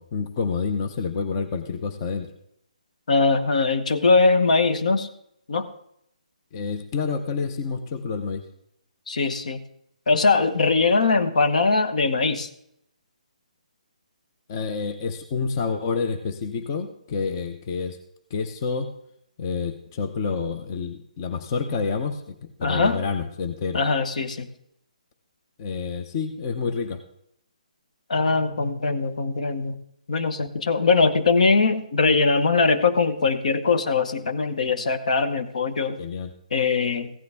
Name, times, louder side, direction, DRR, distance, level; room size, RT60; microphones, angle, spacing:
voice 1, 0.0-2.3 6.5-8.4 14.5-18.0 18.3-18.9 19.4-23.8 25.6-27.0 36.0-36.3, left 5 dB, 30° left, 8 dB, 0.7 m, -28 dB
voice 2, 3.1-5.1 5.5-5.7 9.1-9.6 10.1-12.5 22.6-23.0 23.7-24.5 28.1-29.7 30.1-36.0 36.5-37.1, left 4 dB, 65° left, 9 dB, 1.2 m, -21 dB
15.0 x 9.4 x 3.5 m, 0.73 s
hypercardioid pair, 155°, 4 cm